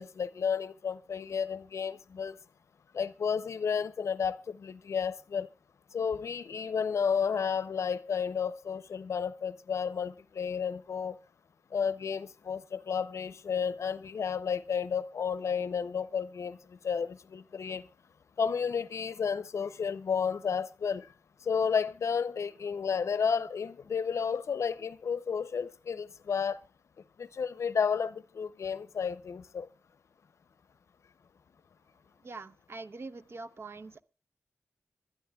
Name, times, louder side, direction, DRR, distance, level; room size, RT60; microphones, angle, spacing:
voice 1, 0.0-2.4 2.9-5.5 5.9-11.1 11.7-17.8 18.4-21.1 21.4-26.6 27.2-29.7, left 6 dB, 75° left, 0.6 m, -32 dB
voice 2, 32.2-34.0, right 3 dB, 55° right, 0.7 m, -44 dB
25.5 x 12.5 x 2.3 m
wide cardioid pair, 75°, 5 cm